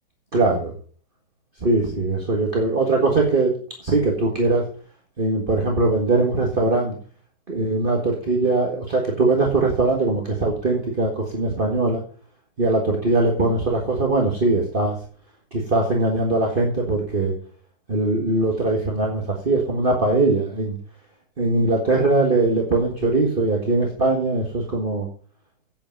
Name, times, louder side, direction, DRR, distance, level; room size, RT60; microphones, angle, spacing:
voice 1, 0.3-0.7 1.6-3.5 3.8-4.6 5.2-6.9 7.5-12.0 12.6-15.0 15.5-17.3 17.9-20.7 21.4-25.1, right 2 dB, 35° right, 0 dB, 1.9 m, -21 dB
8.7 x 7.8 x 7.0 m, 0.43 s
omnidirectional pair, 1.6 m